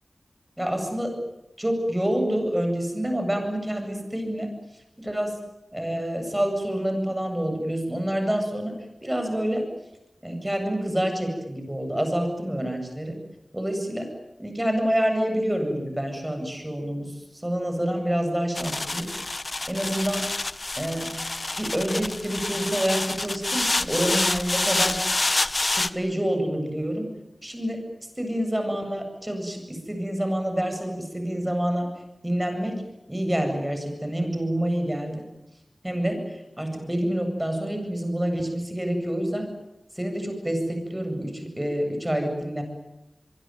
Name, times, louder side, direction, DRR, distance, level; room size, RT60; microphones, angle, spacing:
voice 1, 0.6-1.1 1.6-4.5 5.0-5.4 5.7-8.7 9.0-9.6 10.2-13.2 13.5-14.1 14.4-19.1 19.7-20.2 20.8-21.1 21.6-25.0 25.6-27.1 27.4-27.8 28.2-31.9 32.2-32.8 33.1-35.2 35.8-39.5 39.9-42.6, equal, 10° right, 4 dB, 8.0 m, -27 dB
sound 1, 18.5-25.9, left 2 dB, 45° left, 1.1 m, -27 dB
26.0 x 23.0 x 9.4 m, 0.91 s
wide cardioid pair, 65°, 0 cm